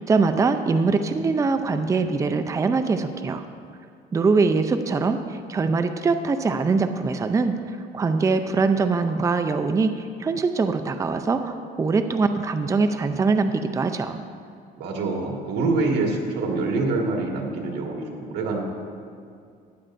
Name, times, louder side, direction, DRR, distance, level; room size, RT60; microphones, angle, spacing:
voice 1, 0.1-3.4 4.1-7.5 7.9-14.2, right 4 dB, 20° right, 8 dB, 0.4 m, -23 dB
voice 2, 14.8-18.6, right 3 dB, 75° right, 0 dB, 1.8 m, -25 dB
15.0 x 10.0 x 2.6 m, 2.3 s
cardioid pair, 110°, 17 cm